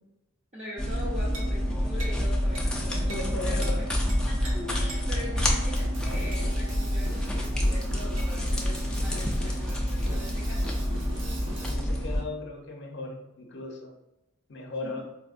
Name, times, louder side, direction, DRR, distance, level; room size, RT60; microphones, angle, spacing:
voice 1, 0.5-3.9 4.3-10.8 14.8-15.0, left 1 dB, 35° right, -8 dB, 0.6 m, -42 dB
sound 1, 0.8-12.2, equal, 5° left, 0.3 m, -27 dB
sound 2, 1.3-1.6 2.0-2.2 2.6-2.7 3.1-3.3 3.6-3.8 4.1-4.5 4.9-5.1 5.4-5.6 6.3-6.5 8.2-8.3, right 2 dB, 85° right, 0.7 m, -42 dB
voice 2, 2.9-3.8 11.7-13.9 14.5-15.0, left 2 dB, 60° left, 2 dB, 0.6 m, -37 dB
Drum kit, 5.7-11.7, equal, 65° right, 1.0 m, -42 dB
4.3 x 2.1 x 2.4 m, 0.91 s
head